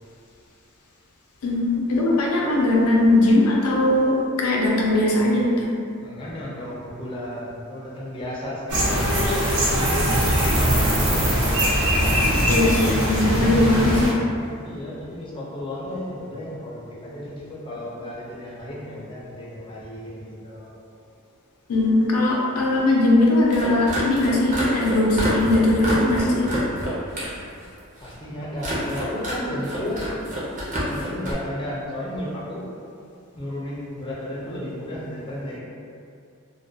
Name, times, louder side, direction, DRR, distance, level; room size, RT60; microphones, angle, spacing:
voice 1, 1.4-5.7 12.5-14.2 21.7-26.5, left 1 dB, 90° left, -3 dB, 0.5 m, -20 dB
voice 2, 6.0-10.1 10.5-11.2 14.5-20.7 28.0-30.1 30.9-32.7 33.3-35.6, left 1 dB, 25° left, -6 dB, 0.4 m, -33 dB
sound 1, 8.7-14.1, equal, 85° right, 0.6 m, -21 dB
sound 2, 23.4-27.4 27.6-28.1 28.6-29.4 29.6-31.3, equal, 35° right, 0.6 m, -28 dB
2.3 x 2.1 x 2.6 m, 2.4 s
head